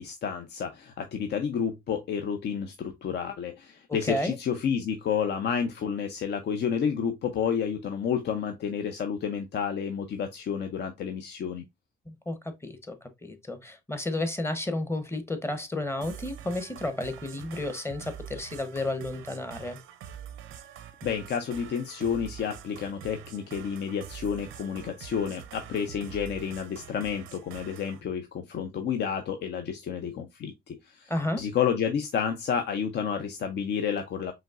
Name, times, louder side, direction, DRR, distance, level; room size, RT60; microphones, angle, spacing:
voice 1, 0.0-11.6 21.0-31.1 31.4-34.3, left 7 dB, 60° left, 0.6 m, -30 dB
voice 2, 3.9-4.4 12.1-12.4 12.6-19.8 31.1-31.4, left 1 dB, 10° left, 0.8 m, -32 dB
sound 1, 16.0-28.0, right 9 dB, 90° right, 0.6 m, -45 dB
5.0 x 3.1 x 2.4 m
cardioid pair, 90°, 20 cm